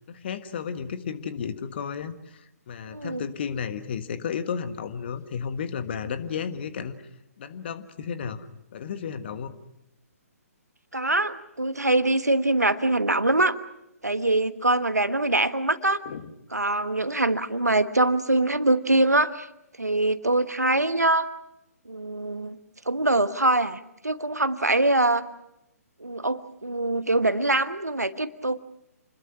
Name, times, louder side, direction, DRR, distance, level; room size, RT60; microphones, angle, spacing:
voice 1, 0.0-6.9 7.4-9.5 16.0-16.3, left 7 dB, 40° left, 10 dB, 1.6 m, -33 dB
voice 2, 2.9-3.3 10.9-13.6 14.0-16.0 16.5-19.5 19.8-21.3 21.9-22.6 22.9-25.2 26.0-28.6, right 2 dB, 80° right, 12 dB, 1.3 m, -23 dB
28.0 x 21.5 x 6.0 m, 0.86 s
figure-of-eight pair, 135°, 9 cm